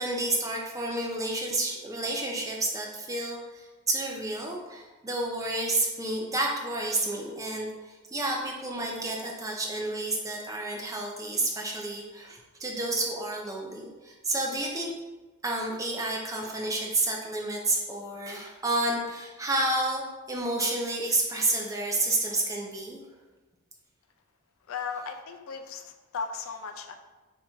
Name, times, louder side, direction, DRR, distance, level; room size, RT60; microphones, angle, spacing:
voice 1, 0.0-14.9 15.4-23.0, right 2 dB, 15° right, -1 dB, 0.5 m, -30 dB
voice 2, 24.7-27.0, left 5 dB, 60° left, 6 dB, 0.3 m, -36 dB
3.5 x 2.7 x 4.4 m, 1.2 s
head